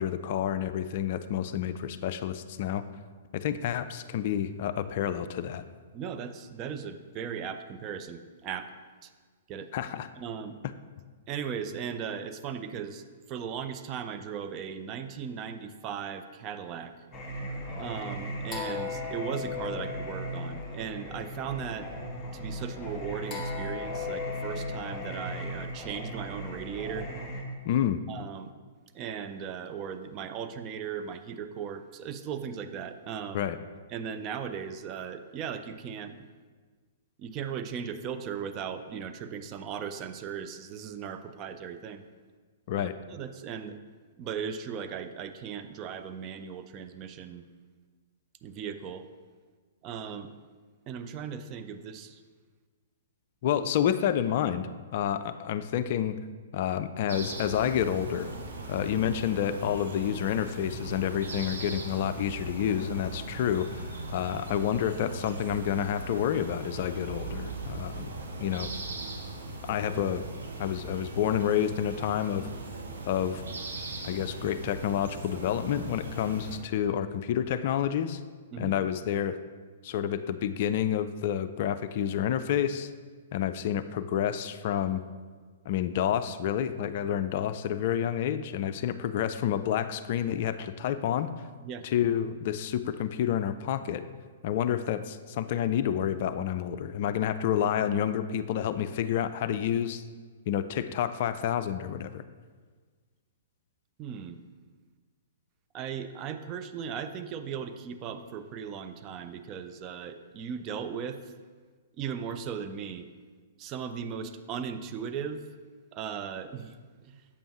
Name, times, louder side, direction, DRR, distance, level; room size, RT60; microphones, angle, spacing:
voice 1, 0.0-2.8 3.3-5.6 9.7-10.1 27.7-28.0 33.3-33.6 42.7-42.9 53.4-56.2 56.5-58.3 58.7-68.1 68.4-68.7 69.6-70.2 70.6-72.5 73.1-73.4 74.0-78.2 78.6-79.4 79.8-82.9 83.3-85.0 85.7-91.3 91.8-94.0 94.4-100.0 100.5-102.2, left 10 dB, 45° left, 12 dB, 0.3 m, -29 dB
voice 2, 5.9-8.7 9.0-9.1 9.5-9.7 10.2-10.6 11.3-16.9 17.8-21.9 22.3-27.1 28.1-28.5 28.9-33.5 33.9-36.3 37.2-42.0 42.8-43.8 44.2-47.4 48.4-49.1 49.8-50.3 50.9-52.2 78.5-78.7 91.6-91.9 104.0-104.4 105.7-111.3 112.0-113.1 113.6-115.4 115.9-116.8 117.0-117.2, right 7 dB, 30° right, 8 dB, 0.4 m, -37 dB
Singing, 17.1-27.4, left 2 dB, 15° left, 1.3 m, -36 dB
sound 1, 57.1-76.6, right 3 dB, 65° right, 1.0 m, -39 dB
8.3 x 6.9 x 2.9 m, 1.5 s
figure-of-eight pair, 115°, 0 cm